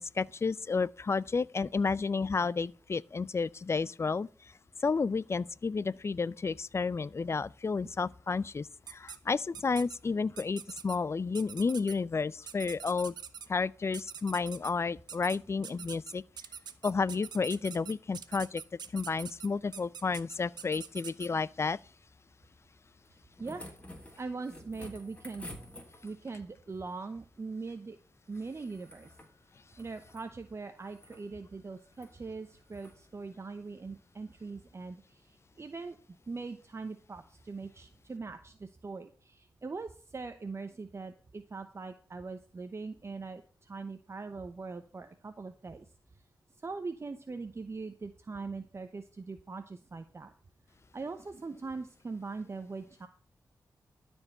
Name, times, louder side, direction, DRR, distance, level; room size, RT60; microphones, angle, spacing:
voice 1, 0.0-4.5 4.8-13.1 13.5-16.2 16.8-18.6 18.9-21.8, left 4 dB, 40° left, 0.5 m, -31 dB
sound 1, 8.9-9.2 9.5-10.0 10.4-11.0 11.3-11.9 12.5-13.5 13.9-14.7 15.1-15.4 15.6-21.3, right 7 dB, 85° right, 0.8 m, -44 dB
sound 2, 23.0-26.4 28.3-29.3 29.7-30.3 30.8-31.2 31.9-32.1 32.7-33.0 34.3-34.4, left 1 dB, 20° left, 3.2 m, -50 dB
voice 2, 24.2-25.5 26.0-28.0 28.3-29.2 29.8-36.0 36.3-45.9 46.6-50.3 50.9-53.1, right 4 dB, 40° right, 0.9 m, -41 dB
13.0 x 4.5 x 7.9 m
cardioid pair, 70°, 7 cm